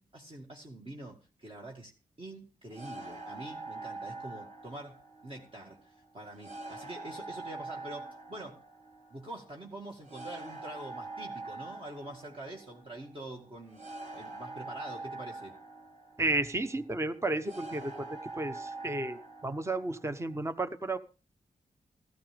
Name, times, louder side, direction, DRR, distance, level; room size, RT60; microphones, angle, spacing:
voice 1, 0.0-1.9 2.2-8.6 9.1-13.8 14.1-15.6, right 1 dB, 40° right, -1 dB, 2.1 m, -45 dB
sound 1, 2.7-20.4, right 3 dB, 60° right, 4.5 m, -45 dB
voice 2, 16.2-18.1 18.4-21.0, right 2 dB, 20° right, 10 dB, 1.0 m, -32 dB
15.0 x 13.0 x 3.4 m, 0.33 s
cardioid pair, 80°, 14 cm